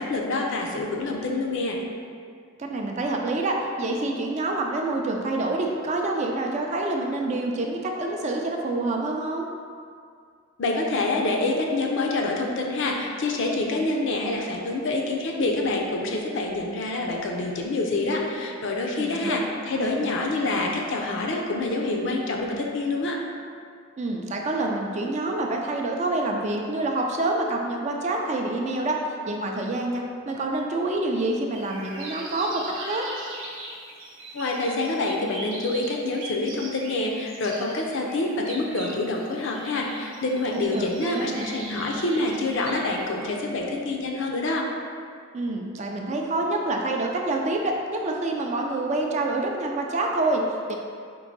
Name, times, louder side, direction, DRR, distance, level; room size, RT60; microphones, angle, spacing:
voice 1, 0.0-1.8 10.6-23.2 34.3-44.7, left 2 dB, 60° left, 0 dB, 0.5 m, -26 dB
voice 2, 2.6-9.5 19.0-19.4 19.7-20.1 24.0-29.0 29.2-33.1 40.5-41.6 45.3-50.8, right 2 dB, 35° right, 1 dB, 0.4 m, -27 dB
sound 1, 31.5-43.0, right 2 dB, 70° right, 0.7 m, -40 dB
4.6 x 2.6 x 3.9 m, 2.2 s
head